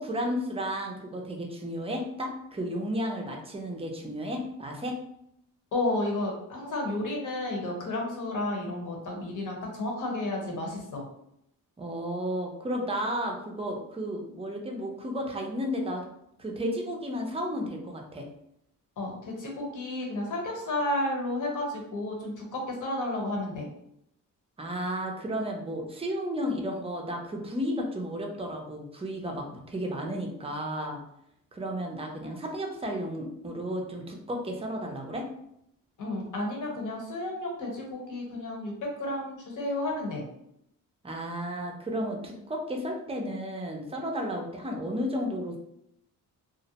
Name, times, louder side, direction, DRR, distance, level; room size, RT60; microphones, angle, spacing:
voice 1, 0.0-5.0 11.8-16.0 16.4-18.3 24.6-31.0 31.5-35.3 41.0-45.6, equal, 15° right, 1 dB, 0.5 m, -33 dB
voice 2, 5.7-11.0 19.0-23.7 36.0-40.3, left 1 dB, 55° left, 0 dB, 0.9 m, -32 dB
2.5 x 2.0 x 2.8 m, 0.76 s
cardioid pair, 90°, 35 cm